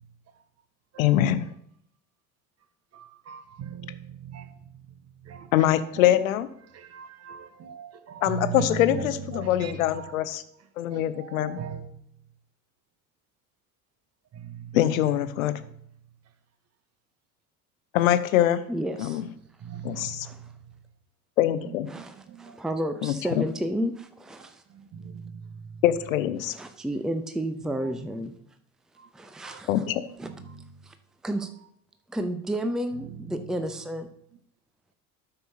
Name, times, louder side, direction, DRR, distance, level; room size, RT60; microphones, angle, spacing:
voice 1, 1.0-1.5 5.5-6.5 8.2-10.4 10.8-11.6 14.7-15.6 17.9-18.6 19.0-19.2 19.8-20.3 21.4-21.9 23.0-23.4 25.8-26.6 29.7-30.0, left 12 dB, 70° left, 0.7 m, -23 dB
voice 2, 2.9-5.7 6.7-10.2 10.9-11.9 14.3-14.8 19.6-20.5 21.6-22.6 24.4-25.8 27.8-27.9 29.0-29.1 29.4-29.6 30.2-30.6 33.0-33.2, right 7 dB, 35° right, 1.0 m, -39 dB
voice 3, 18.7-19.2 19.9-20.4 21.9-24.6 26.5-28.3 29.1-29.7 30.2-30.3 30.8-30.9 31.2-31.5 32.1-34.1, right 1 dB, ahead, 0.6 m, -31 dB
12.5 x 6.8 x 2.8 m
figure-of-eight pair, 60°, 43 cm